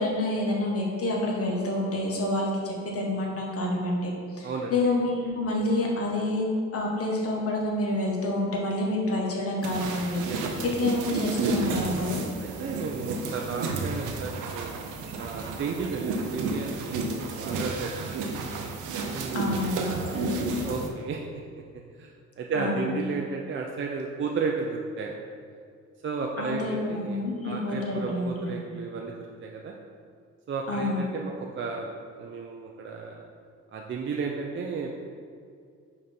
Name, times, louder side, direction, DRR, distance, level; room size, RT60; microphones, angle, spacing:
voice 1, 0.0-6.5 6.7-12.2 19.3-20.4 22.5-23.0 26.4-28.6 30.7-31.0, left 1 dB, 50° left, -1 dB, 1.4 m, -28 dB
sound 1, 9.6-20.9, right 3 dB, 85° right, 0.7 m, -31 dB
voice 2, 12.4-14.7 15.1-18.4 19.1-20.2 20.7-21.2 21.6-21.7 22.0-25.2 26.0-29.7 30.5-33.2 33.7-34.9, right 4 dB, 40° right, 0 dB, 0.6 m, -33 dB
5.2 x 4.1 x 4.3 m, 2.3 s
cardioid pair, 90°, 30 cm